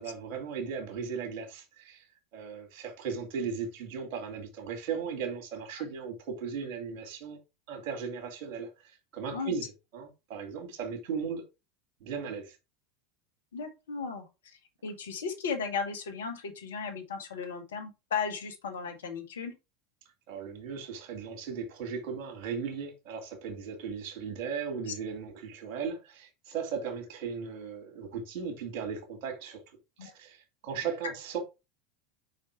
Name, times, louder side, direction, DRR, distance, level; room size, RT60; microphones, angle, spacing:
voice 1, 0.0-2.0 2.3-7.4 7.7-9.6 9.9-11.4 12.0-12.6 20.3-29.6 30.0-31.4, right 6 dB, 55° right, 2.5 m, -37 dB
voice 2, 13.5-14.3 14.8-19.5 24.9-25.0 30.0-30.1, left 5 dB, 75° left, 1.6 m, -35 dB
5.2 x 5.0 x 4.7 m
figure-of-eight pair, 80°, 0 cm